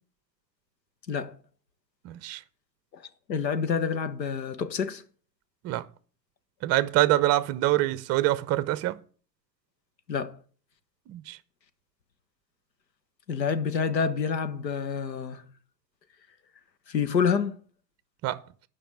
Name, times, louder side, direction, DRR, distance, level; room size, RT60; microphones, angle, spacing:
voice 1, 2.0-2.4 5.6-5.9 6.6-9.0 11.1-11.4 18.2-18.4, right 15 dB, 30° right, 0.7 m, -25 dB
voice 2, 3.3-5.0 10.1-10.4 13.3-15.4 16.9-17.6, left 6 dB, 85° left, 1.3 m, -28 dB
10.0 x 5.5 x 7.8 m
hypercardioid pair, 100°, 50 cm